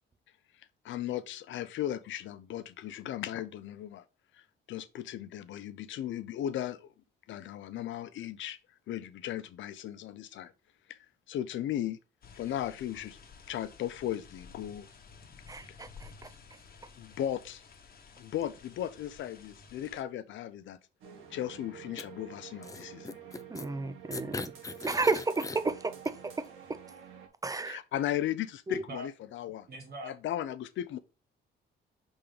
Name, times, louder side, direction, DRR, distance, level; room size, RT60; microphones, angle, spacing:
voice 1, 0.8-4.0 4.7-6.9 7.3-8.6 8.9-10.5 10.9-11.0 11.3-12.0 12.4-13.2 13.5-14.9 17.0-17.6 18.2-20.8 21.3-23.2 27.6-29.7 30.0-31.0, left 11 dB, 75° left, 0.6 m, -36 dB
sound 1, 12.2-20.0, left 5 dB, 50° left, 1.3 m, -53 dB
voice 2, 15.5-16.1 23.5-24.5 24.8-26.2 27.4-27.8 28.7-28.8, right 3 dB, 15° right, 0.7 m, -32 dB
sound 2, 21.0-27.3, right 8 dB, 90° right, 1.8 m, -50 dB
sound 3, 22.0-22.1 22.6-23.7 24.1-25.6 26.1-26.2, left 3 dB, 15° left, 0.5 m, -40 dB
voice 3, 28.7-29.1 29.7-30.1, right 1 dB, 55° right, 1.3 m, -42 dB
5.6 x 3.5 x 5.0 m
cardioid pair, 90°, 20 cm